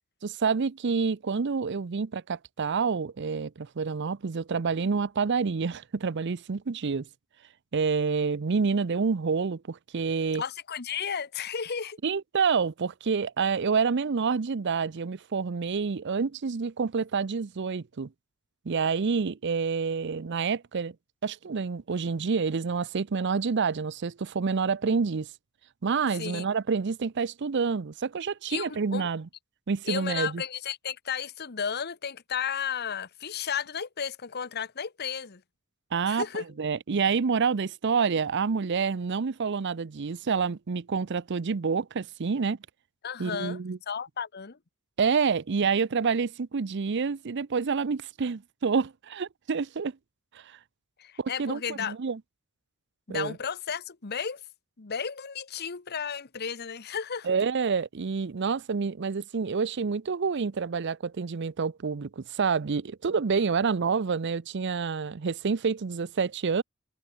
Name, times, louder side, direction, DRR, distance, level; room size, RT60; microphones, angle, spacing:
voice 1, 0.2-7.1 7.7-10.4 12.0-18.1 18.7-20.9 21.2-25.3 25.8-29.3 29.7-30.4 35.9-42.6 43.2-43.8 45.0-49.9 50.3-50.6 51.2-52.2 53.1-53.4 57.2-66.6, right 5 dB, 55° right, 0.6 m, -28 dB
voice 2, 10.3-12.0 26.2-26.5 28.5-29.1 29.8-35.4 36.1-36.4 43.0-43.6 43.9-44.6 51.0-51.9 53.1-54.4 54.8-57.3, left 7 dB, 50° left, 1.0 m, -33 dB
head